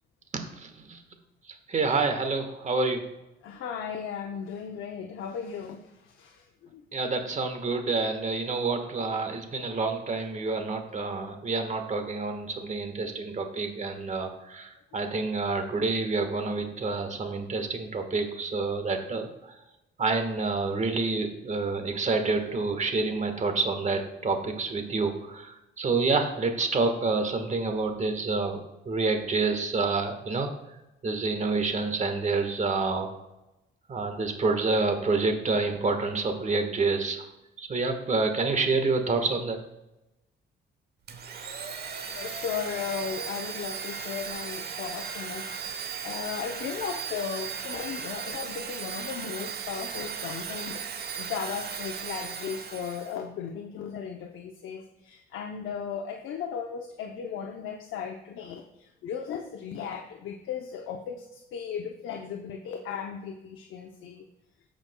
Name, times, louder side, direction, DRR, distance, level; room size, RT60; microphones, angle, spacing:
voice 1, 0.3-1.0 1.7-3.0 6.9-19.3 20.0-30.5 31.0-33.1 33.9-37.3 37.6-39.6, right 3 dB, 35° right, 6 dB, 1.3 m, -28 dB
voice 2, 3.4-6.8 42.2-50.8 51.1-64.2, left 7 dB, 80° left, 3 dB, 0.7 m, -36 dB
Domestic sounds home sounds, 41.1-53.2, right 6 dB, 55° right, 1.0 m, -36 dB
14.0 x 5.1 x 2.2 m, 0.95 s
cardioid pair, 90°, 20 cm